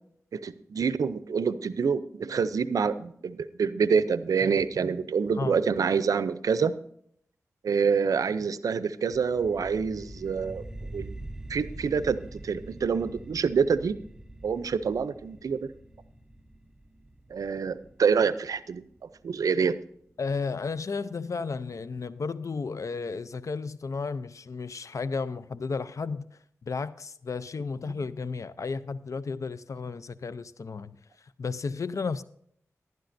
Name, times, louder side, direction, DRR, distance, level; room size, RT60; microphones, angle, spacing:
voice 1, 0.3-6.7 7.6-10.6 10.9-11.1 11.5-14.0 14.4-15.7 17.3-18.8 19.2-19.8, right 6 dB, 85° right, 0.5 m, -26 dB
sound 1, 9.1-20.1, right 1 dB, 10° right, 1.2 m, -45 dB
voice 2, 20.2-26.3 26.6-31.0 31.4-32.2, left 4 dB, 65° left, 0.6 m, -33 dB
14.5 x 11.5 x 2.6 m
cardioid pair, 45°, 6 cm